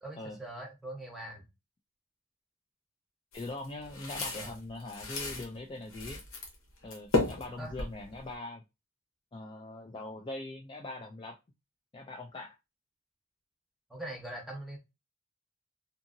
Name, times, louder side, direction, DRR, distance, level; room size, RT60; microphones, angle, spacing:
voice 1, 0.0-1.5 4.3-4.6 7.6-7.7 13.9-14.8, right 1 dB, ahead, 0 dB, 0.8 m, -42 dB
sound 1, 3.3-5.5 5.9-6.5 6.8-8.3, left 3 dB, 80° left, 1.0 m, -34 dB
voice 2, 3.3-6.2 6.8-8.6 9.3-11.4 11.9-12.6, left 2 dB, 25° left, 1 dB, 0.3 m, -42 dB
2.8 x 2.6 x 2.5 m, 0.24 s
head